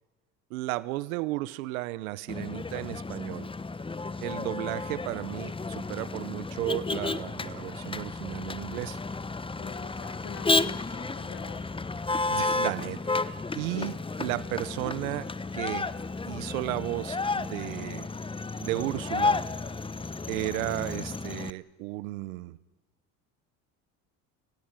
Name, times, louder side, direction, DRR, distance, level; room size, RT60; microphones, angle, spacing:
voice 1, 0.5-3.5 4.2-9.0 12.3-13.0 13.5-15.9 16.3-18.1 18.6-19.4 20.3-22.6, right 18 dB, 85° right, 18 dB, 1.0 m, -34 dB
Motor vehicle (road), 2.3-21.5, left 3 dB, 15° left, 0.8 m, -32 dB
voice 2, 9.6-11.6 13.8-14.1, left 13 dB, 60° left, 11 dB, 1.9 m, -45 dB
28.5 x 21.5 x 9.0 m, 1.2 s
hypercardioid pair, 70°, 41 cm